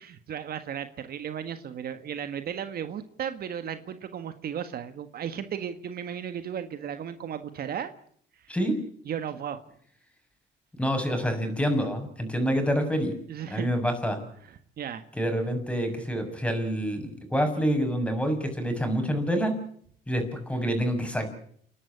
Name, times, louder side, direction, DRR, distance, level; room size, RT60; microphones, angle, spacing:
voice 1, 0.0-7.9 9.0-9.6 13.3-13.7 14.5-15.0, right 8 dB, 60° right, 10 dB, 1.6 m, -35 dB
voice 2, 10.8-13.1 13.5-14.2 15.1-19.5 20.1-21.3, equal, 5° left, 6 dB, 6.9 m, -27 dB
29.5 x 11.5 x 10.0 m, 0.63 s
cardioid pair, 90°, 18 cm